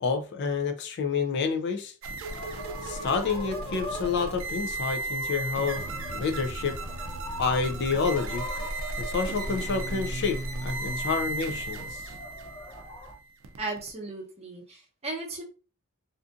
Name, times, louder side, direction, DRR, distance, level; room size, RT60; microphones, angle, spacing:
voice 1, 0.0-1.9 2.8-5.8 6.1-6.8 7.4-8.5 9.0-12.0, left 5 dB, 55° left, 6 dB, 0.4 m, -29 dB
sound 1, 2.0-13.9, right 2 dB, 65° right, 0.4 m, -35 dB
sound 2, 2.3-13.1, left 1 dB, 20° left, 1.1 m, -43 dB
voice 2, 13.6-15.4, right 2 dB, 30° right, -1 dB, 0.8 m, -36 dB
2.5 x 2.4 x 2.4 m, 0.35 s
head